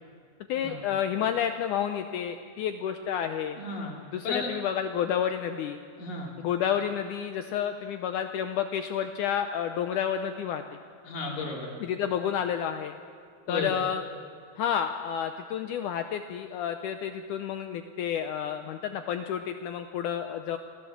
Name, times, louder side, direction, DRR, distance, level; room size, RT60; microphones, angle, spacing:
voice 1, 0.5-3.6 4.1-5.8 6.4-10.6 11.8-13.0 13.5-14.0 14.6-20.6, left 9 dB, 80° left, 7 dB, 1.8 m, -30 dB
voice 2, 3.6-3.9 4.2-4.5 6.0-6.3 11.0-11.8 13.5-13.7, left 3 dB, 65° left, -1 dB, 4.6 m, -34 dB
25.5 x 15.0 x 7.1 m, 2.1 s
omnidirectional pair, 4.3 m